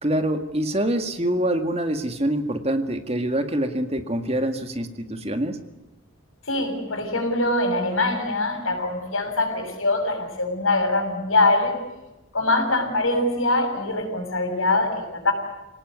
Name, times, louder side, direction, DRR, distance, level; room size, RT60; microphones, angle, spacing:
voice 1, 0.0-5.6, right 1 dB, 30° right, 7 dB, 2.0 m, -25 dB
voice 2, 6.5-11.8 12.3-15.3, left 2 dB, 85° left, 5 dB, 6.9 m, -23 dB
27.0 x 18.5 x 9.6 m, 1.0 s
head